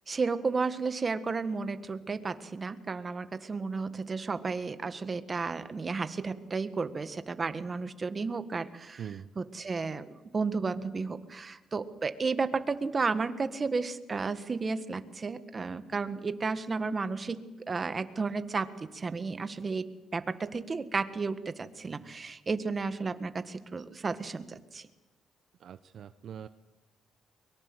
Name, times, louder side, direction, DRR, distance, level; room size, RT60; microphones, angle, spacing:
voice 1, 0.1-9.0 9.4-19.8 20.1-24.9, right 4 dB, 35° right, 10 dB, 1.6 m, -33 dB
voice 2, 9.0-9.3 25.6-26.5, right 8 dB, 65° right, 11 dB, 0.8 m, -42 dB
23.5 x 22.5 x 7.9 m, 1.1 s
cardioid pair, 90°, 0 cm